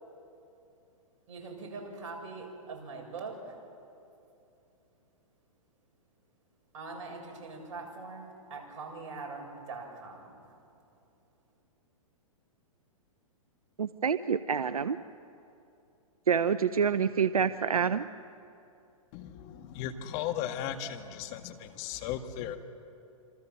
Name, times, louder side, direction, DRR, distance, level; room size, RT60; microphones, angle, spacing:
voice 1, 1.3-3.6 6.7-10.5, right 3 dB, 55° right, 1 dB, 7.5 m, -42 dB
voice 2, 13.8-15.0 16.3-18.0, right 7 dB, 85° right, 13 dB, 0.8 m, -27 dB
voice 3, 19.1-22.6, left 10 dB, 40° left, 7 dB, 1.8 m, -36 dB
27.0 x 26.5 x 7.6 m, 2.7 s
hypercardioid pair, 120°, 18 cm